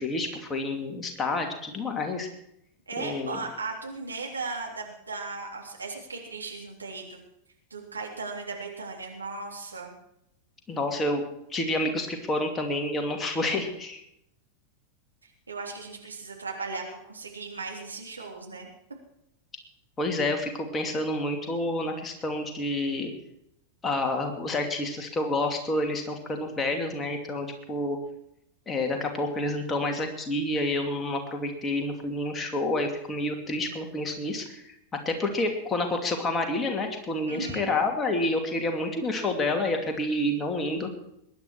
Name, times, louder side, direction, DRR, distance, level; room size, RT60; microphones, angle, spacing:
voice 1, 0.0-2.3 3.0-3.4 10.7-11.2 11.5-14.0 20.0-23.1 23.8-28.0 28.7-34.7 35.0-40.9, left 2 dB, 15° left, 3 dB, 2.6 m, -29 dB
voice 2, 2.9-7.2 7.7-10.0 15.2-18.7 37.3-37.7, right 3 dB, 75° right, 0 dB, 3.4 m, -37 dB
21.5 x 10.5 x 4.7 m, 0.78 s
figure-of-eight pair, 90°, 0 cm